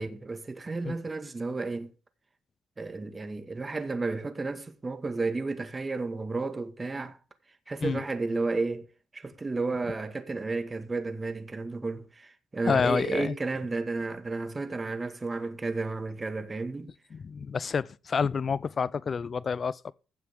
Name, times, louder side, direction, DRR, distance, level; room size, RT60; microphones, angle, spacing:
voice 1, 0.0-1.9 2.8-7.2 7.7-8.9 9.1-16.9, right 3 dB, 25° right, 1.9 m, -32 dB
voice 2, 12.7-13.3 17.1-19.9, left 6 dB, 45° left, 0.6 m, -28 dB
15.5 x 7.5 x 3.7 m
cardioid pair, 90°, 0 cm